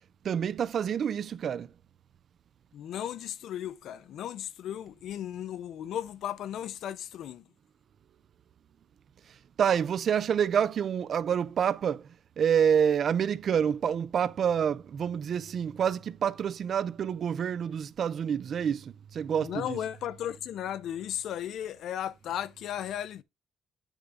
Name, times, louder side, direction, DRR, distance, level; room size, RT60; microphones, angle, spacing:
voice 1, 0.2-1.7 9.6-12.1 12.4-19.8, right 8 dB, 60° right, 0.6 m, -27 dB
voice 2, 2.7-7.4 19.4-23.2, left 10 dB, 75° left, 0.6 m, -35 dB
9.1 x 3.6 x 5.0 m
cardioid pair, 90°, 0 cm